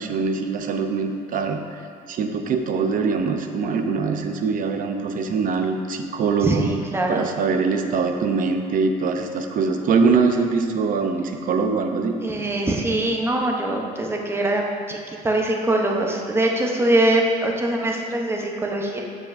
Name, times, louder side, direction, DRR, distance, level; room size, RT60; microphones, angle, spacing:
voice 1, 0.0-1.8 2.1-6.6 7.1-12.2, right 4 dB, 55° right, 5 dB, 0.6 m, -23 dB
voice 2, 6.4-7.3 12.2-15.0 15.2-19.0, right 1 dB, 15° right, 0 dB, 0.8 m, -22 dB
7.3 x 7.2 x 2.6 m, 2.2 s
cardioid pair, 110°, 17 cm